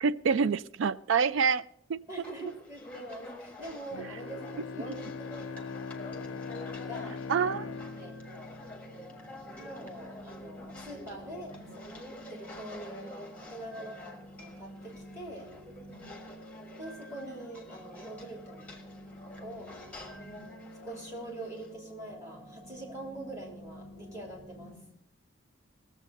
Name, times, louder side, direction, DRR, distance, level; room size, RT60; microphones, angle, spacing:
voice 1, 0.0-1.6 1.9-2.0 7.3-7.7, right 6 dB, 80° right, 15 dB, 0.4 m, -26 dB
sound 1, 2.1-21.7, left 1 dB, 5° left, 1.4 m, -49 dB
voice 2, 2.1-5.8 6.8-7.1 7.4-8.2 9.6-15.5 16.8-18.8 19.4-19.7 20.8-24.7, right 1 dB, 15° right, -1 dB, 3.2 m, -44 dB
Bowed string instrument, 3.9-9.5, left 5 dB, 85° left, 0.5 m, -41 dB
sound 2, 7.3-24.7, equal, 55° right, 6.1 m, -50 dB
18.5 x 7.4 x 5.2 m, 0.72 s
head